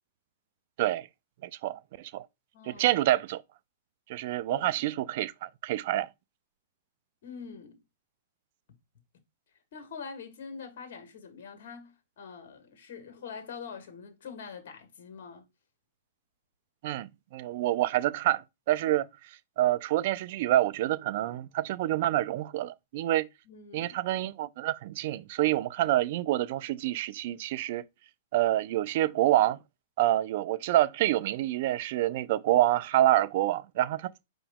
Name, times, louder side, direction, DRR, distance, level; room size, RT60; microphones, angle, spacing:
voice 1, 1.4-2.3 2.7-3.4 4.1-6.1 16.8-19.1 19.6-23.3 23.7-27.8 28.3-29.6 30.0-34.3, right 14 dB, 55° right, 0.4 m, -27 dB
voice 2, 2.5-2.9 4.5-4.7 7.2-7.8 9.7-15.5 23.4-24.0, left 6 dB, 60° left, 1.5 m, -44 dB
5.1 x 2.9 x 3.5 m
hypercardioid pair, 140°, 0 cm